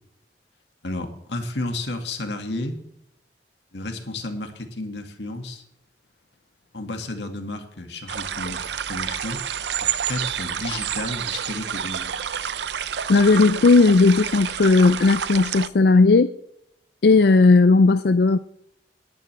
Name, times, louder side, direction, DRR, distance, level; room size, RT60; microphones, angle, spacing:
voice 1, 0.8-2.8 3.7-5.6 6.7-9.4 10.0-12.1, left 2 dB, 80° left, 5 dB, 2.0 m, -32 dB
sound 1, 8.1-15.7, right 8 dB, 75° right, 0.6 m, -29 dB
voice 2, 13.1-16.3 17.0-18.4, left 3 dB, 60° left, 12 dB, 0.4 m, -16 dB
19.5 x 10.5 x 3.4 m, 0.77 s
head